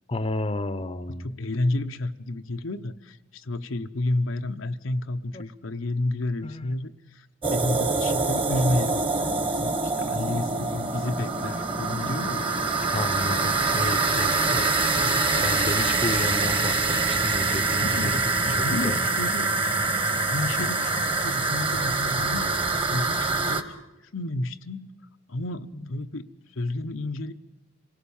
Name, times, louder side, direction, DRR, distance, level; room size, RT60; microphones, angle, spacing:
voice 1, 0.1-1.4 5.3-5.4 6.4-6.8 9.5-9.7 10.1-10.5 12.7-14.7 15.0-19.0 23.1-23.2 25.8-25.9, left 2 dB, 30° left, 13 dB, 0.7 m, -32 dB
voice 2, 1.2-12.5 17.8-19.5 20.0-22.5 22.9-23.6 24.1-24.9 25.3-26.2 26.6-27.3, left 2 dB, 85° left, 7 dB, 0.9 m, -31 dB
sound 1, 7.4-23.6, right 3 dB, 25° right, 1.4 m, -25 dB
26.5 x 17.5 x 7.1 m, 1.0 s
head